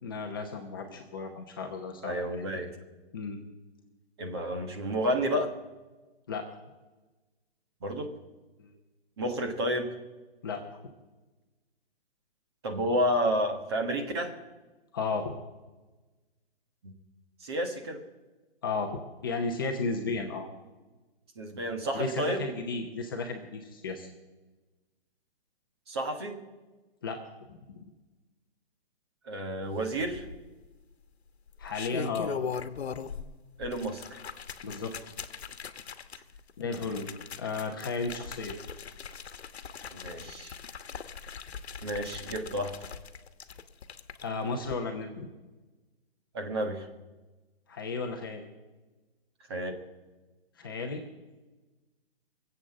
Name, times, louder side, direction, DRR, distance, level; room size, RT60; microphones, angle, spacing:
voice 1, 0.0-2.6 3.1-3.4 6.3-6.5 8.6-8.7 10.4-10.6 14.9-15.3 18.6-20.5 21.9-24.1 27.0-27.2 27.5-27.9 31.6-32.3 34.6-35.1 36.6-37.1 37.4-38.5 44.2-45.3 47.7-48.4 50.6-51.0, left 4 dB, 20° left, 1 dB, 0.9 m, -34 dB
voice 2, 2.0-2.7 4.2-5.6 7.8-8.1 9.2-9.9 12.6-14.3 16.8-16.9 17.4-18.0 21.4-22.4 25.9-26.4 29.2-30.2 33.6-34.0 39.9-40.6 41.8-42.8 46.3-46.9 49.5-49.8, equal, 25° right, 4 dB, 1.4 m, -30 dB
sound 1, 30.0-30.7 31.5-33.3 33.6-44.2 44.6-44.7, left 6 dB, 80° left, 1.2 m, -40 dB
22.0 x 8.1 x 7.6 m, 1.2 s
hypercardioid pair, 180°, 32 cm